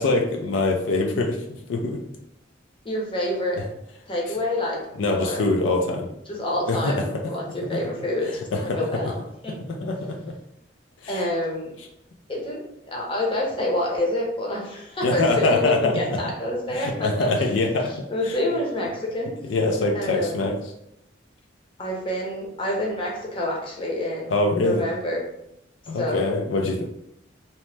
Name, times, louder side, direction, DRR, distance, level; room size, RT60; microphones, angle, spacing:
voice 1, 0.0-2.0 5.0-6.1 6.7-7.0 7.7-7.8 8.3-9.1 9.8-10.3 11.0-11.3 15.0-16.2 16.7-18.4 19.5-20.6 24.3-24.8 25.9-26.8, left 2 dB, 80° left, 2 dB, 0.4 m, -24 dB
voice 2, 2.8-3.6 4.1-4.8 5.1-5.4 6.3-9.2 9.4-9.6 11.1-11.7 12.3-12.6 12.9-17.5 17.9-19.3 19.9-20.4 21.8-24.4 24.6-25.2 25.9-26.3, left 1 dB, 30° left, -2 dB, 0.7 m, -27 dB
2.9 x 2.0 x 3.2 m, 0.80 s
head